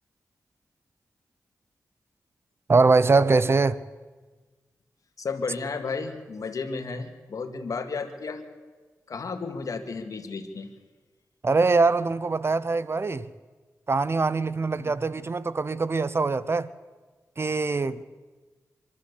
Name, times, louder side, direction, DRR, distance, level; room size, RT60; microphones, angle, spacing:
voice 1, 2.7-3.8 11.4-13.3 13.9-16.7 17.4-18.0, right 3 dB, 40° right, 0.7 m, -23 dB
voice 2, 5.2-8.4 9.1-10.7 14.8-15.0, left 4 dB, 65° left, 2.0 m, -33 dB
24.5 x 13.0 x 8.2 m
cardioid pair, 65°, 6 cm